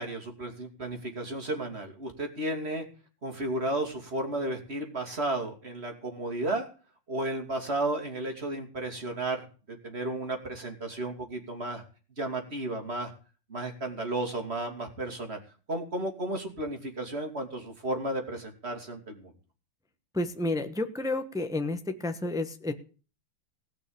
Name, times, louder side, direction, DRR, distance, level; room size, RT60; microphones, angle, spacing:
voice 1, 0.0-2.9 3.2-6.7 7.1-9.5 9.8-11.8 12.2-13.1 13.5-15.4 15.7-19.3, right 2 dB, 30° right, 4 dB, 2.8 m, -33 dB
voice 2, 20.1-22.7, left 2 dB, 5° right, 8 dB, 0.7 m, -30 dB
18.0 x 6.0 x 8.7 m, 0.37 s
omnidirectional pair, 2.2 m